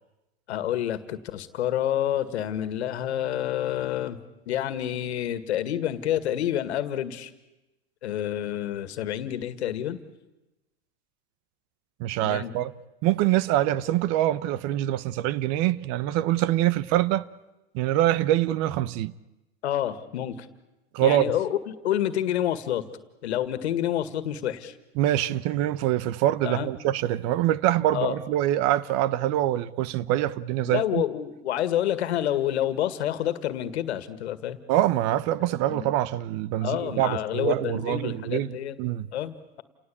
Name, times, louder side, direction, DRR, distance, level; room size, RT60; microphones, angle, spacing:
voice 1, 0.5-4.2 4.5-7.3 8.0-10.0 12.2-12.5 19.6-20.5 21.0-22.8 23.2-24.7 26.4-26.7 27.9-28.2 30.7-34.6 35.7-35.9 36.6-38.8 39.1-39.6, left 11 dB, 85° left, 2.0 m, -28 dB
voice 2, 12.0-12.7 13.0-17.2 17.7-19.1 20.9-21.3 25.0-31.0 34.7-39.1, right 13 dB, 50° right, 1.0 m, -24 dB
29.0 x 18.5 x 8.7 m
supercardioid pair, 120°, 32 cm